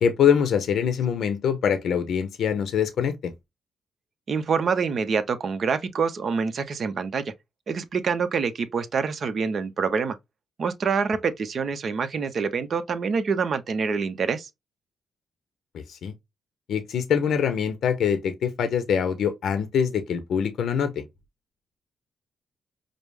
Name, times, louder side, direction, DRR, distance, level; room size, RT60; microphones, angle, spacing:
voice 1, 0.0-3.3 15.9-16.1 16.7-21.0, left 7 dB, 75° left, 0.7 m, -24 dB
voice 2, 4.3-7.2 7.7-10.2 10.6-14.5, right 5 dB, 55° right, 0.7 m, -26 dB
5.2 x 2.0 x 3.3 m
cardioid pair, 85°, 0 cm